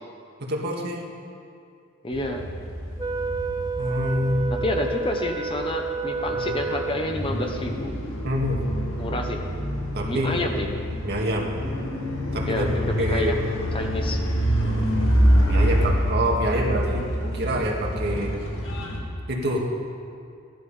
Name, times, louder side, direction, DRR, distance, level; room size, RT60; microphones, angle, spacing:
voice 1, 0.4-1.0 3.8-4.6 6.3-6.4 8.2-8.6 9.9-10.4 11.0-11.5 12.3-12.7 13.0-13.4 14.6-18.3 19.3-19.7, equal, 55° right, -1 dB, 1.9 m, -26 dB
voice 2, 2.0-2.4 4.6-7.9 9.0-9.4 10.0-10.7 12.5-13.4 13.7-14.2, left 1 dB, 25° left, 3 dB, 1.0 m, -28 dB
sound 1, 2.1-19.0, equal, 75° left, 2.1 m, -26 dB
Wind instrument woodwind instrument, 3.0-7.4, right 5 dB, 20° right, 0.5 m, -30 dB
15.5 x 11.5 x 5.6 m, 2.4 s
head